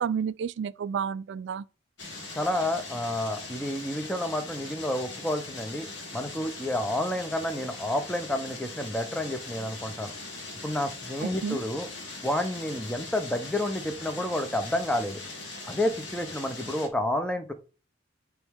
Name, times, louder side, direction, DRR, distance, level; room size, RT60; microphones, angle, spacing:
voice 1, 0.0-1.6 11.2-11.6, right 7 dB, 65° right, 0.3 m, -31 dB
sound 1, 2.0-16.9, left 3 dB, 65° left, 1.5 m, -41 dB
voice 2, 2.3-5.9 6.1-10.1 10.6-11.9 12.2-15.2 15.7-17.5, left 1 dB, 5° left, 0.7 m, -30 dB
9.1 x 3.1 x 3.6 m
head